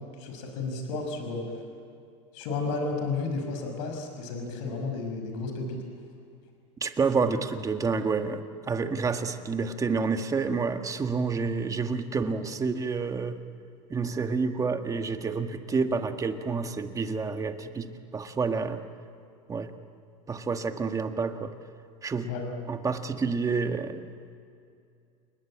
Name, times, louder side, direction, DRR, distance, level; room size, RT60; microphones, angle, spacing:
voice 1, 0.2-1.5 2.3-5.8 22.2-22.5, left 3 dB, 70° left, 4 dB, 5.9 m, -32 dB
voice 2, 6.8-13.4 13.9-18.8 19.5-19.7 20.3-21.5 22.0-22.3 22.7-24.0, right 4 dB, 20° right, 7 dB, 1.7 m, -29 dB
29.0 x 20.0 x 8.8 m, 2.4 s
supercardioid pair, 120°, 16 cm